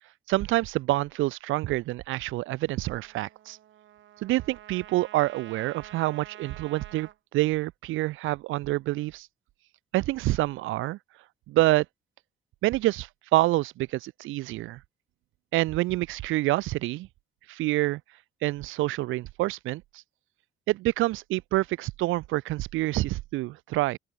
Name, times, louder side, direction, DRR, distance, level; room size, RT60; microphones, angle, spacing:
voice 1, 0.3-3.6 4.2-9.3 9.9-11.0 11.5-11.9 12.6-14.8 15.5-17.1 17.5-18.0 18.4-19.8 20.7-24.0, right 18 dB, 90° right, 0.6 m, -27 dB
Trumpet, 2.8-7.2, right 12 dB, 70° right, 1.5 m, -48 dB
open air
cardioid pair, 90°, 20 cm